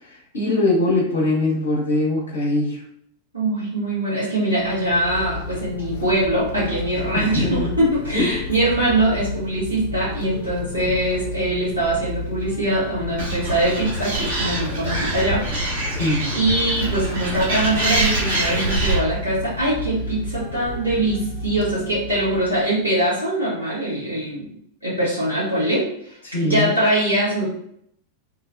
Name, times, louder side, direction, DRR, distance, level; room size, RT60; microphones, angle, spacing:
voice 1, 0.0-2.8 7.1-7.8 8.1-8.3 15.9-16.3 26.2-26.8, left 2 dB, 70° left, -2 dB, 0.8 m, -22 dB
voice 2, 3.3-15.7 16.3-24.5 24.8-27.7, right 1 dB, 80° right, -9 dB, 1.2 m, -22 dB
sound 1, 4.6-22.8, left 2 dB, 50° left, 0.3 m, -32 dB
Animal, 13.2-19.0, right 2 dB, 60° right, 1.0 m, -25 dB
3.0 x 2.1 x 2.5 m, 0.70 s
figure-of-eight pair, 90°, 0 cm